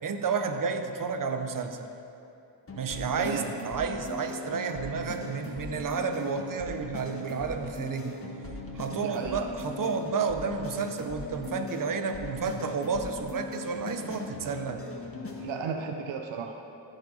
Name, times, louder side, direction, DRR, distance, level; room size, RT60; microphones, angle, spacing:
voice 1, 0.0-1.9 2.8-8.2 8.7-14.8, right 5 dB, 45° right, 6 dB, 0.9 m, -31 dB
sound 1, 2.7-15.6, left 2 dB, 30° left, 1.4 m, -40 dB
voice 2, 3.2-3.5 8.9-9.4 14.4-14.5 15.4-16.6, right 6 dB, 85° right, 4 dB, 0.7 m, -34 dB
15.0 x 5.1 x 4.0 m, 2.7 s
cardioid pair, 60°, 44 cm